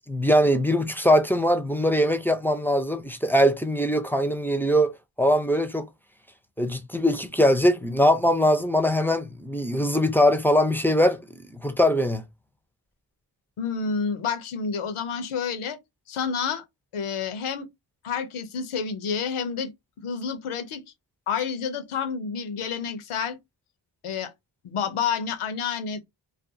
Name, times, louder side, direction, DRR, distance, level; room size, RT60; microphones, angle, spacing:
voice 1, 0.1-5.9 6.6-12.2, equal, 5° left, 0.4 m, -22 dB
voice 2, 13.6-15.8 16.1-16.6 16.9-17.7 18.0-19.7 20.0-20.8 21.3-23.4 24.0-24.3 24.6-26.0, left 6 dB, 85° left, 0.6 m, -29 dB
2.5 x 2.3 x 2.6 m
cardioid pair, 40°, 49 cm